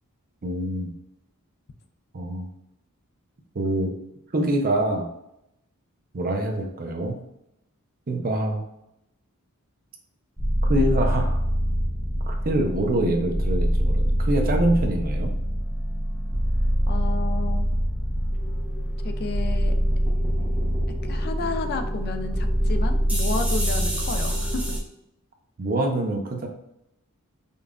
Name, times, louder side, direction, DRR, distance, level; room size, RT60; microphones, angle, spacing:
voice 1, 0.4-0.9 2.1-2.5 3.5-3.9 4.3-5.1 6.1-7.2 8.1-8.6 10.6-11.4 12.3-15.3 25.6-26.5, right 1 dB, 45° right, 3 dB, 0.6 m, -25 dB
sound 1, 10.4-24.8, equal, 5° right, 0.7 m, -24 dB
voice 2, 16.9-17.7 19.0-19.8 21.0-24.8, left 4 dB, 45° left, 7 dB, 0.4 m, -32 dB
5.3 x 2.5 x 2.3 m, 0.82 s
head